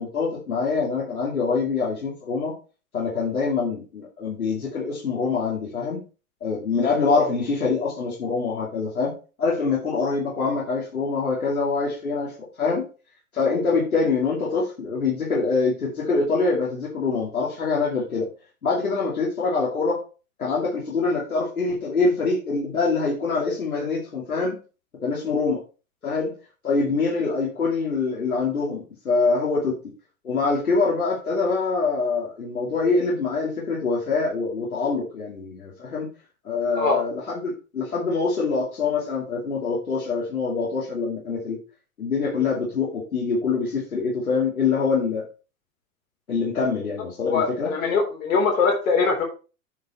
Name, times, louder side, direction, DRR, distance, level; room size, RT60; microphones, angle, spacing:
voice 1, 0.0-2.5 2.9-6.0 6.4-9.1 9.4-12.3 12.6-12.9 13.3-18.3 18.6-20.0 20.4-24.5 25.0-25.6 26.0-26.3 26.6-29.8 30.2-36.1 36.4-41.6 42.0-45.2 46.3-47.7, left 4 dB, 85° left, -5 dB, 2.8 m, -24 dB
voice 2, 47.2-49.2, left 4 dB, 70° left, 1 dB, 3.6 m, -22 dB
9.3 x 4.8 x 4.4 m, 0.34 s
hypercardioid pair, 100°, 42 cm